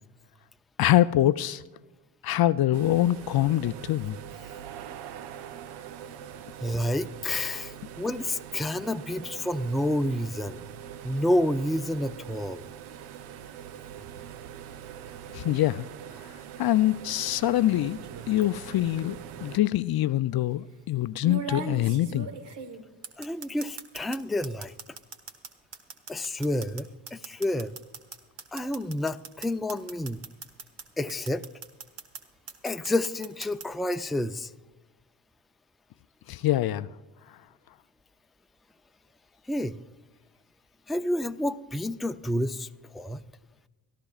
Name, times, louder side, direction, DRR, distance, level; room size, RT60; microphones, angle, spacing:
voice 1, 0.8-1.6 2.2-4.2 15.3-15.9 16.6-18.0 18.3-22.3 36.3-36.9, left 14 dB, 50° left, 0.5 m, -24 dB
sound 1, 2.7-19.6, right 9 dB, 85° right, 0.7 m, -43 dB
voice 2, 6.6-10.7 11.0-12.6 23.2-25.0 26.1-27.7 28.5-30.3 31.0-31.4 32.6-34.5 39.5-39.8 40.9-43.2, left 1 dB, ahead, 0.4 m, -29 dB
sound 2, 18.0-18.4 19.6-19.7 21.2-24.2 24.4-30.8 31.1-32.2 32.5-33.7, right 5 dB, 60° right, 1.6 m, -39 dB
24.0 x 13.5 x 2.4 m
hypercardioid pair, 50°, 49 cm